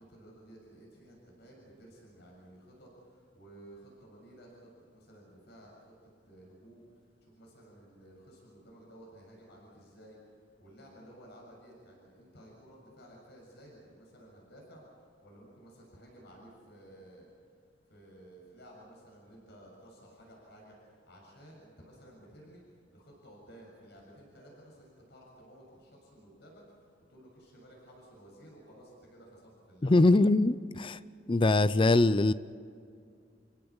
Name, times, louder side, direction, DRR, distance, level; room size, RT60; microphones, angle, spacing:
voice 1, 0.0-6.0 6.2-10.2 10.6-14.8 15.2-17.3 17.9-22.6 22.9-30.0, right 1 dB, 65° left, -2 dB, 6.9 m, -54 dB
voice 2, 29.8-31.0 31.3-32.3, left 2 dB, 30° left, 15 dB, 0.5 m, -23 dB
28.5 x 16.5 x 7.2 m, 2.3 s
head